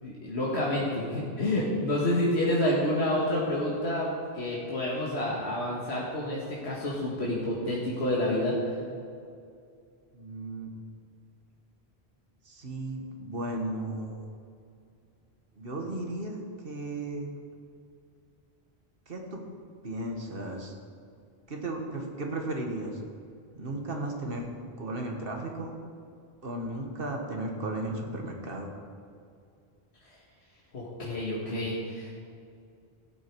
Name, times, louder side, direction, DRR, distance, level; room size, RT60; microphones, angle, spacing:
voice 1, 0.0-8.8 30.7-32.2, left 1 dB, 90° left, -5 dB, 2.0 m, -29 dB
voice 2, 10.1-10.7 12.4-14.2 15.6-16.4 16.6-17.3 19.1-19.4 19.8-20.7 21.5-23.0 23.5-24.4 24.8-25.7 26.4-28.7, right 2 dB, 60° right, 1 dB, 1.7 m, -35 dB
16.0 x 8.3 x 4.7 m, 2.4 s
omnidirectional pair, 1.1 m